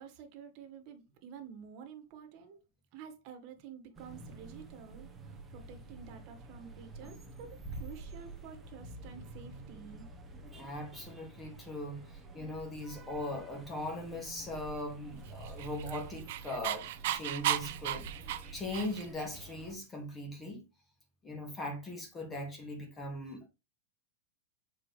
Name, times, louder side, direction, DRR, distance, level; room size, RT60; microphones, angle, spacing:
voice 1, 0.0-2.6 2.9-10.1, right 7 dB, 45° right, 1.8 m, -50 dB
sound 1, 3.9-19.7, right 3 dB, 10° right, 1.2 m, -49 dB
voice 2, 10.5-20.6 21.2-23.5, left 1 dB, 15° left, 2.4 m, -40 dB
Dog, 15.4-19.2, right 13 dB, 65° right, 0.7 m, -35 dB
7.3 x 4.8 x 3.4 m
supercardioid pair, 145°, 0 cm